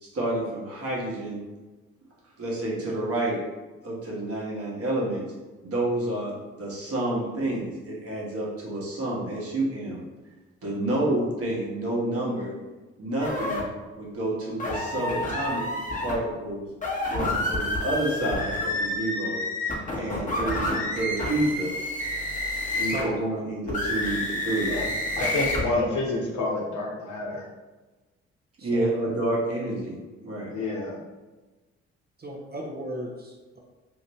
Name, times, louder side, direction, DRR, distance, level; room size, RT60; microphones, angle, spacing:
voice 1, 0.0-1.4 2.4-3.4 3.8-5.2 5.6-6.3 6.6-10.0 10.6-12.5 13.0-13.6 14.0-15.6 16.0-16.6 17.1-19.4 19.9-21.7 22.8-24.7 28.6-30.5, right 1 dB, 45° right, -5 dB, 1.3 m, -29 dB
sound 1, 13.2-13.6 14.6-16.2 16.7-23.1 23.7-25.6, left 1 dB, 25° left, 1.1 m, -29 dB
voice 2, 22.9-23.3 28.6-28.9 32.2-33.6, right 1 dB, 30° right, -1 dB, 0.7 m, -35 dB
voice 3, 25.2-27.4 30.5-30.9, left 2 dB, 60° left, -2 dB, 0.9 m, -28 dB
2.9 x 2.5 x 3.1 m, 1.2 s
hypercardioid pair, 45°, 32 cm